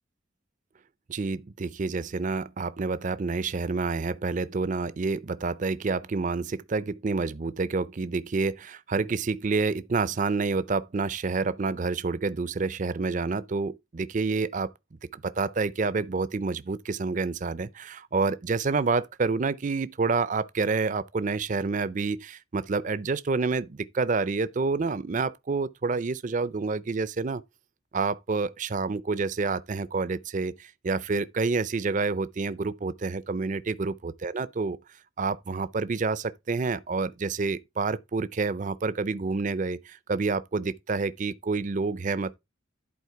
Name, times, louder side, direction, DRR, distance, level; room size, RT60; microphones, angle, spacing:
voice 1, 1.1-14.7 15.1-27.4 27.9-34.8 35.2-42.4, right 4 dB, 35° right, 0.4 m, -28 dB
11.0 x 4.3 x 4.5 m
head